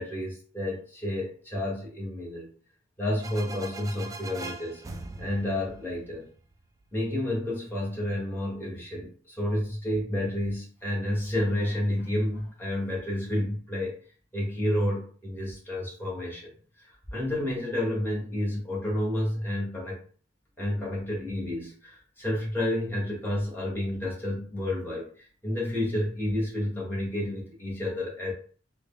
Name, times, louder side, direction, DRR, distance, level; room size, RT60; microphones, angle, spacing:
voice 1, 0.0-2.5 3.0-4.8 5.2-6.3 6.9-14.0 14.3-16.5 16.8-20.0 20.6-28.3, left 1 dB, 10° left, -5 dB, 1.1 m, -30 dB
sound 1, 3.2-6.8, right 2 dB, 15° right, 0.3 m, -42 dB
3.6 x 2.0 x 3.5 m, 0.43 s
head